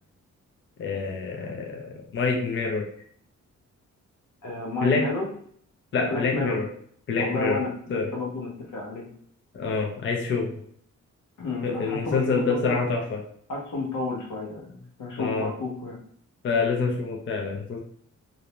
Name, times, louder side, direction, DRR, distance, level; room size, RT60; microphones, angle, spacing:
voice 1, 0.8-2.9 4.8-5.0 5.9-6.7 7.1-7.6 7.9-8.1 9.5-10.5 11.6-13.2 15.2-15.5 16.4-17.8, left 4 dB, 40° left, 1 dB, 0.5 m, -26 dB
voice 2, 4.4-5.3 6.0-6.6 7.2-9.1 11.4-12.8 13.5-16.0, left 3 dB, 85° left, -1 dB, 0.9 m, -31 dB
2.5 x 2.1 x 2.9 m, 0.62 s
wide cardioid pair, 145°, 30 cm